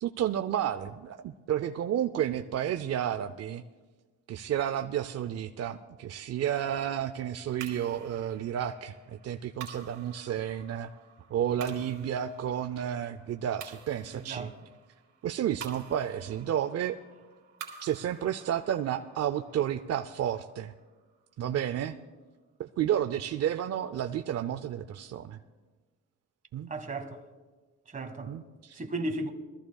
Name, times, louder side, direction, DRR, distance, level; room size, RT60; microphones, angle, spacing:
voice 1, 0.0-3.6 4.3-10.9 11.3-14.5 15.2-17.0 17.8-20.7 21.4-22.0 22.6-25.4 26.5-26.7 28.3-28.8, right 10 dB, 55° right, 0.5 m, -31 dB
sound 1, 7.6-22.1, right 7 dB, 80° right, 2.6 m, -50 dB
voice 2, 14.1-14.5 26.7-27.2 27.9-28.3 28.7-29.3, right 2 dB, 25° right, 1.5 m, -35 dB
22.5 x 14.0 x 2.3 m
cardioid pair, 90°, 30 cm